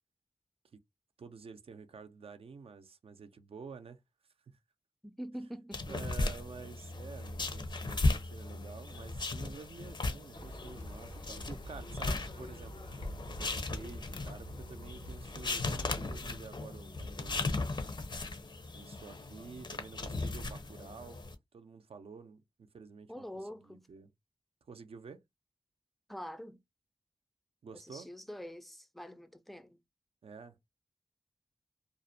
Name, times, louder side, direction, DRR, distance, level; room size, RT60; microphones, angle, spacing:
voice 1, 1.2-4.0 4.5-4.6 5.9-12.7 13.4-17.7 18.7-21.2 21.5-23.3 23.5-24.1 24.7-25.2 27.6-28.1 30.2-30.6, right 5 dB, 70° right, 0.5 m, -50 dB
voice 2, 5.0-6.1 23.1-23.9 26.1-26.6 27.7-29.8, equal, ahead, 0.4 m, -45 dB
sound 1, 5.7-21.3, left 2 dB, 50° left, 0.5 m, -37 dB
Livestock farm animals working animals, 10.3-16.4, equal, 85° left, 0.7 m, -47 dB
2.4 x 2.0 x 2.6 m
cardioid pair, 45°, 10 cm